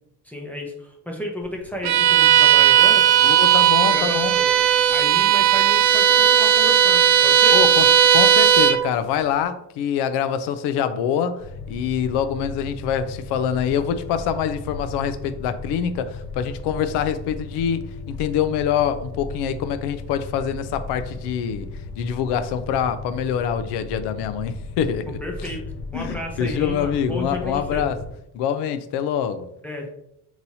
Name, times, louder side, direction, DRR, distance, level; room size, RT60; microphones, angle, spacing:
voice 1, 0.2-3.1 3.8-4.5 4.9-7.6 25.2-25.6 25.9-27.8 29.6-29.9, left 1 dB, 5° left, 0 dB, 0.6 m, -32 dB
Bowed string instrument, 1.8-8.9, right 10 dB, 75° right, 0.5 m, -16 dB
voice 2, 3.2-4.4 7.5-7.9 8.1-21.7 22.0-25.2 25.9-28.0 28.3-29.5, left 8 dB, 80° left, 11 dB, 0.5 m, -25 dB
sound 1, 11.4-28.1, left 3 dB, 60° left, 1.5 m, -36 dB
5.4 x 3.0 x 2.7 m, 0.77 s
cardioid pair, 145°, 40 cm